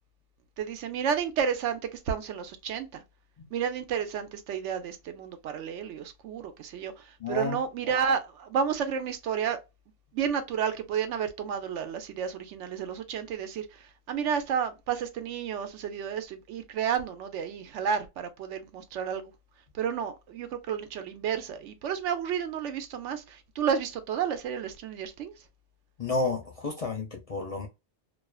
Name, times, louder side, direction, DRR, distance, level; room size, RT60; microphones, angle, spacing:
voice 1, 0.6-3.0 3.5-9.6 10.1-19.3 19.7-25.3, right 7 dB, 85° right, 0.9 m, -31 dB
voice 2, 7.2-7.6 26.0-27.7, left 3 dB, 45° left, 0.5 m, -31 dB
2.4 x 2.3 x 2.3 m
omnidirectional pair, 1.2 m